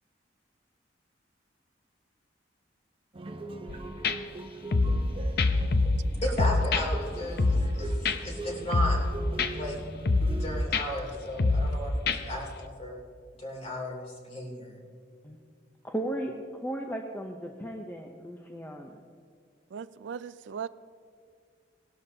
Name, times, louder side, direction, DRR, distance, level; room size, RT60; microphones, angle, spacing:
sound 1, 3.1-10.6, right 2 dB, 30° right, 0.8 m, -41 dB
sound 2, 3.7-3.8 4.0-4.2 4.7-5.1 5.4-6.1 6.4-6.8 7.4-7.8 8.0-8.2 8.7-9.1 9.4-9.5 10.1-10.4 10.7-10.8 11.4-11.8 12.1-12.2, left 3 dB, 60° left, 0.7 m, -24 dB
voice 1, 6.2-9.0 9.5-9.8 10.4-13.0 13.4-14.8, left 1 dB, 35° left, 2.9 m, -35 dB
voice 2, 15.8-19.0, right 1 dB, 10° left, 0.6 m, -36 dB
voice 3, 19.7-20.7, right 7 dB, 80° right, 0.4 m, -38 dB
18.5 x 12.0 x 2.8 m
head